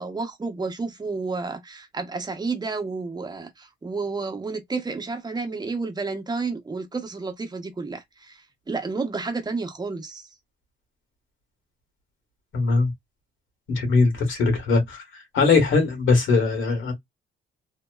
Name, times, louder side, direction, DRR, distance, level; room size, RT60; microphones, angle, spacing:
voice 1, 0.0-10.3, right 4 dB, 20° right, 0.8 m, -31 dB
voice 2, 12.5-12.9 13.8-15.0 15.3-16.9, left 4 dB, 80° left, 1.3 m, -20 dB
2.8 x 2.0 x 2.2 m
cardioid pair, 90°, 20 cm